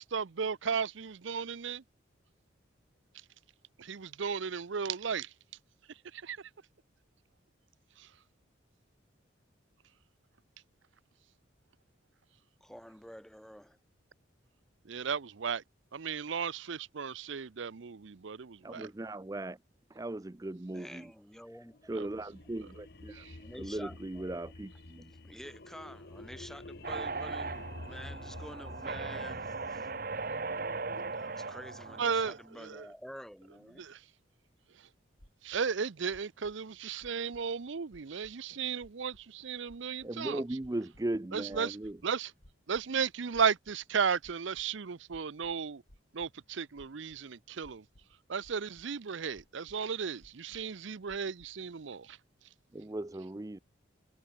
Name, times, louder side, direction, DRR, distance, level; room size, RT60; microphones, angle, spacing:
voice 1, 0.0-1.8 3.8-5.3 6.1-6.4 8.0-8.1 14.9-15.6 15.9-18.9 21.9-22.1 23.1-23.4 32.0-32.9 35.4-40.4 41.3-41.8 42.0-42.3 42.7-45.8 46.1-47.8 48.3-52.2, right 6 dB, 70° right, 0.6 m, -34 dB
voice 2, 12.6-13.8 20.7-21.8 23.4-24.3 25.2-29.9 31.1-33.8, equal, ahead, 1.6 m, -49 dB
voice 3, 18.6-19.6 19.9-21.1 21.9-23.2 23.6-25.1 40.0-42.0 52.7-53.6, right 1 dB, 15° right, 0.4 m, -38 dB
sound 1, 21.7-31.1, left 2 dB, 50° left, 1.3 m, -49 dB
sound 2, 26.8-32.4, right 4 dB, 45° right, 1.1 m, -38 dB
sound 3, 35.2-35.6 36.1-36.5 37.0-37.5 37.9-38.3 38.8-39.2 39.7-40.1 40.6-41.0 41.5-42.0 42.4-42.9 43.3-43.9 44.2-44.7 45.1-46.3 46.8-47.2 47.6-48.1 48.4-48.9 49.3-49.8 50.2-50.7 51.1-51.5, equal, 85° left, 5.3 m, -59 dB
head